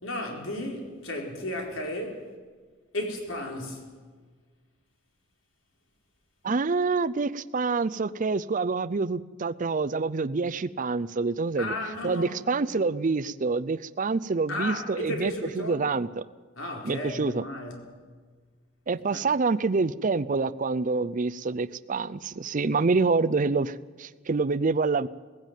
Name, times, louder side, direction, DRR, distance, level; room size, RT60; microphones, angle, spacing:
voice 1, 0.0-2.3 2.9-3.9 11.6-12.8 14.5-15.8 16.6-18.0 19.1-19.2, left 1 dB, 90° left, 4.1 m, -34 dB
voice 2, 6.4-11.7 12.0-16.2 16.8-17.4 18.9-25.1, right 4 dB, 40° right, 0.5 m, -27 dB
18.0 x 16.0 x 9.2 m
head